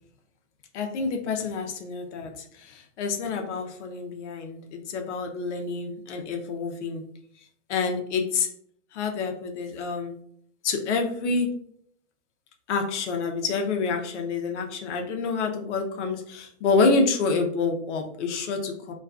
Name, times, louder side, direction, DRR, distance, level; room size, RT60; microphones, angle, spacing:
voice 1, 0.7-2.3 2.6-7.0 7.7-8.5 8.9-10.1 10.6-11.5 12.7-18.9, left 4 dB, 65° left, 3 dB, 0.6 m, -27 dB
2.3 x 2.3 x 2.3 m, 0.64 s
hypercardioid pair, 145°, 38 cm